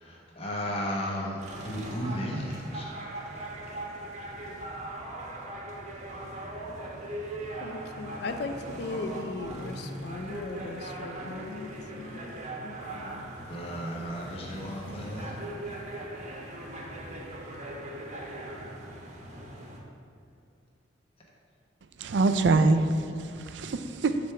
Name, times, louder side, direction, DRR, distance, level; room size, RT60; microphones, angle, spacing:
voice 1, 0.0-2.9 13.5-15.3, equal, 30° left, -3 dB, 1.0 m, -34 dB
sound 1, 1.4-19.8, right 1 dB, 40° right, 1.0 m, -40 dB
voice 2, 7.6-12.4 12.6-13.3, left 3 dB, 60° left, 7 dB, 0.4 m, -38 dB
voice 3, 22.0-24.3, right 3 dB, 65° right, 8 dB, 0.4 m, -25 dB
8.0 x 3.4 x 5.7 m, 2.4 s
head